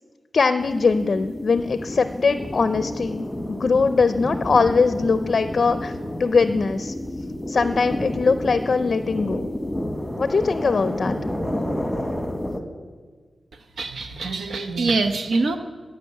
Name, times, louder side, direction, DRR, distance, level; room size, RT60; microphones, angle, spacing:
voice 1, 0.3-5.9 6.2-6.9 7.5-9.5 10.2-11.2, left 4 dB, 60° left, 10 dB, 0.4 m, -21 dB
sound 1, 0.6-12.6, left 1 dB, 10° left, 1.2 m, -30 dB
voice 2, 13.5-15.6, right 3 dB, 85° right, 7 dB, 0.8 m, -24 dB
14.0 x 6.0 x 8.3 m, 1.4 s
wide cardioid pair, 100°, 0 cm